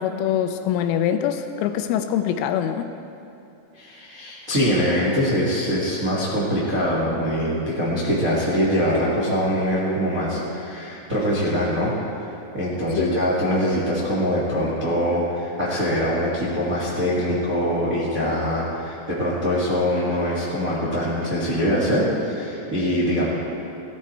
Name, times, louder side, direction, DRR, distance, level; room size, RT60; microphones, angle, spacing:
voice 1, 0.0-2.9 12.9-13.1, left 9 dB, 85° left, 8 dB, 3.2 m, -24 dB
voice 2, 3.7-23.3, equal, 35° right, -6 dB, 1.3 m, -23 dB
17.0 x 13.0 x 4.6 m, 2.8 s
omnidirectional pair, 5.6 m